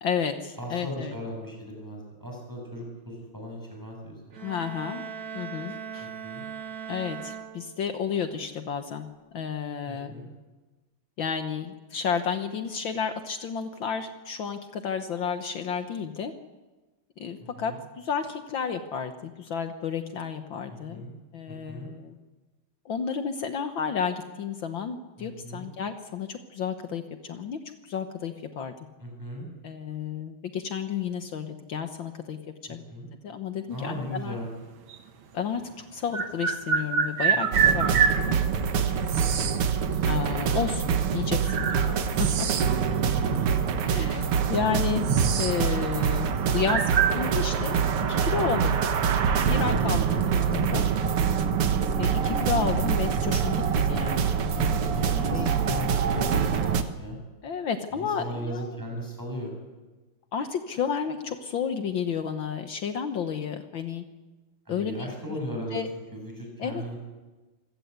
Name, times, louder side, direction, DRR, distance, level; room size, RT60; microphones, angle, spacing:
voice 1, 0.0-1.1 4.4-5.1 5.3-6.1 6.9-10.2 11.2-16.3 17.2-21.1 21.3-22.2 22.9-28.7 29.6-32.4 32.7-32.8 33.2-34.4 35.3-38.4 40.0-42.7 43.8-45.1 45.4-47.8 48.1-48.8 49.4-50.9 52.0-54.3 54.6-55.0 55.3-55.7 57.4-58.7 60.3-64.0 64.7-65.1 65.7-65.9 66.6-67.0, left 7 dB, 65° left, 7 dB, 1.8 m, -32 dB
voice 2, 0.6-4.4 6.0-6.4 9.9-10.3 17.4-17.8 20.7-21.1 21.5-21.9 25.2-25.7 29.0-29.5 32.7-33.1 33.7-34.5 37.3-37.8 39.1-39.5 43.0-43.5 49.6-50.1 54.6-57.2 57.9-59.5 64.7-65.8 66.1-67.0, equal, 10° right, 1 dB, 7.3 m, -37 dB
sound 1, 4.3-8.1, right 7 dB, 45° right, 1.7 m, -39 dB
sound 2, 34.9-35.0 36.1-38.2 39.1-39.6 40.7-40.8 41.4-42.9 43.1-43.3 44.1-44.2 44.5-45.6 45.9-46.1 46.6-47.2, right 7 dB, 65° right, 2.1 m, -25 dB
sound 3, 37.5-56.8, right 7 dB, 90° right, 2.2 m, -25 dB
26.5 x 17.0 x 8.1 m, 1.2 s
omnidirectional pair, 2.4 m